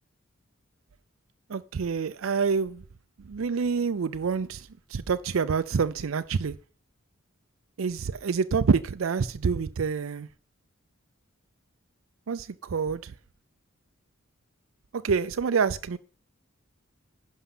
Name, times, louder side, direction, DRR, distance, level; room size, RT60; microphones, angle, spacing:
voice 1, 1.5-2.8 3.3-6.5 7.8-10.3 12.3-13.1 14.9-16.0, right 5 dB, 75° right, 0.5 m, -27 dB
11.5 x 5.5 x 5.6 m
head